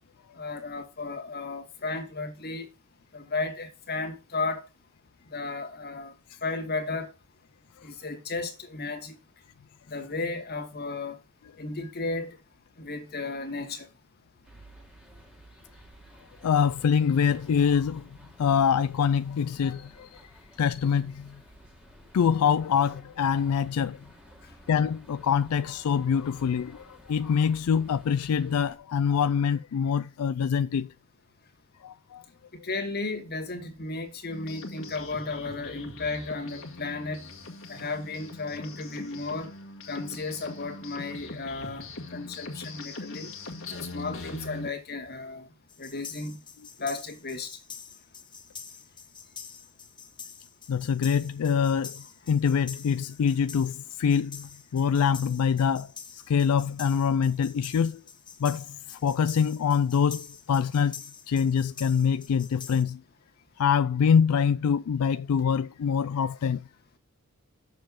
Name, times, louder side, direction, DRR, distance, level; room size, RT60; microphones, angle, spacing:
voice 1, 0.4-2.7 3.1-4.6 5.3-6.1 6.4-7.1 7.8-9.2 9.9-11.2 11.6-12.4 12.8-13.9 32.6-37.2 37.7-39.5 39.9-43.3 43.7-45.5 45.8-46.4 46.8-47.5, left 3 dB, 45° left, 2.2 m, -34 dB
sound 1, 14.4-28.8, equal, 5° right, 1.8 m, -53 dB
voice 2, 16.4-18.1 18.4-20.2 20.6-21.4 22.1-24.0 24.7-30.9 31.8-32.2 50.7-58.0 58.4-63.0 63.6-66.7, left 7 dB, 85° left, 0.4 m, -25 dB
sound 2, 34.3-44.7, left 3 dB, 65° left, 1.8 m, -41 dB
sound 3, 45.7-62.8, left 6 dB, 20° left, 0.9 m, -46 dB
7.4 x 6.9 x 3.7 m
head